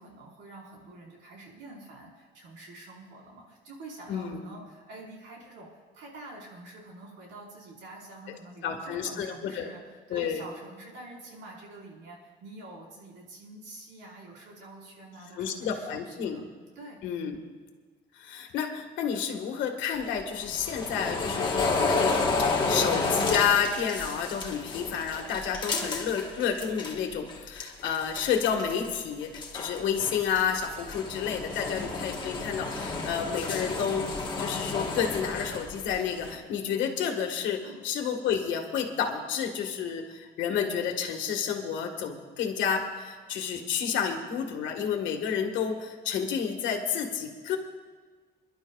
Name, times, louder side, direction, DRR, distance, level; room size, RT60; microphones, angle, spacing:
voice 1, 0.0-16.4 16.7-17.0 37.6-37.8, right 2 dB, 75° right, -2 dB, 4.5 m, -47 dB
voice 2, 8.6-9.7 10.1-10.4 15.3-16.5 17.0-17.4 18.1-47.6, left 7 dB, 85° left, 3 dB, 1.7 m, -30 dB
sound 1, 19.9-27.0 27.3-28.9 29.2-36.3, left 3 dB, 25° left, 1.4 m, -31 dB
29.0 x 11.5 x 2.4 m, 1.5 s
cardioid pair, 170°, 19 cm